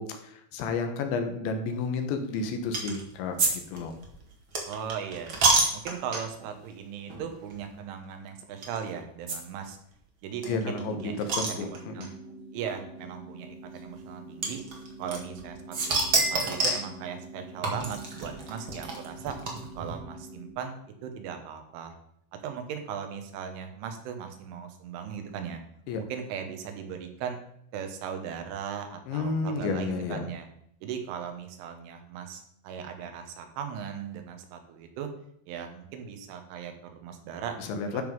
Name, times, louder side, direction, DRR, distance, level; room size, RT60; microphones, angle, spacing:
voice 1, 0.0-4.0 10.5-12.1 25.9-26.0 29.1-30.3 37.6-38.0, left 4 dB, 75° left, 6 dB, 3.4 m, -31 dB
sound 1, 2.7-3.0 3.4-6.5 7.1-7.2 7.5-7.6 8.6-8.8 9.3-9.4 9.6-9.7 9.9-10.0 10.4-12.1 13.0-13.1 14.4-15.4 15.7-16.9 17.6-19.9, right 3 dB, 60° right, 1.3 m, -27 dB
voice 2, 4.7-9.8 10.2-12.1 12.5-14.6 15.0-16.0 16.3-19.4 19.8-21.9 22.4-25.6 26.0-27.4 27.7-30.5 30.8-35.1 35.5-37.6 37.9-38.0, right 7 dB, 90° right, 5 dB, 3.8 m, -38 dB
sound 2, 10.5-20.5, right 1 dB, 55° left, 3.0 m, -46 dB
12.5 x 5.4 x 5.4 m, 0.71 s
omnidirectional pair, 5.4 m